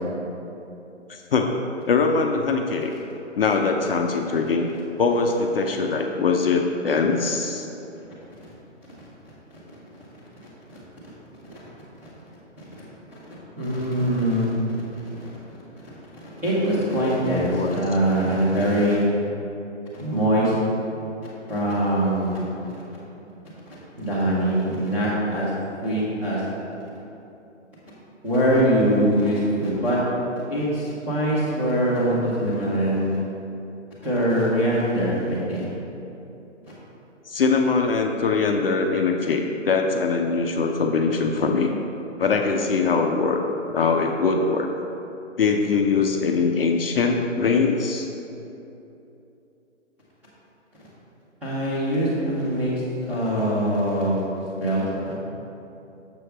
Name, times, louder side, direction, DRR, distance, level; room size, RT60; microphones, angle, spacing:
voice 1, 1.1-1.5 1.9-2.9 3.3-4.7 5.0-7.7 17.5-17.7 37.3-41.7 42.2-43.4 43.7-44.7 45.4-48.1, left 4 dB, 50° left, 3 dB, 0.5 m, -22 dB
voice 2, 12.8-13.2 13.6-14.6 15.1-15.3 16.2-19.1 20.0-20.5 21.5-22.8 24.0-25.5 25.8-26.4 28.2-30.0 30.5-33.2 34.0-35.6 51.4-52.7 53.0-54.2 54.6-55.1, equal, 5° right, -12 dB, 0.7 m, -23 dB
6.8 x 6.5 x 3.3 m, 2.9 s
hypercardioid pair, 155°, 37 cm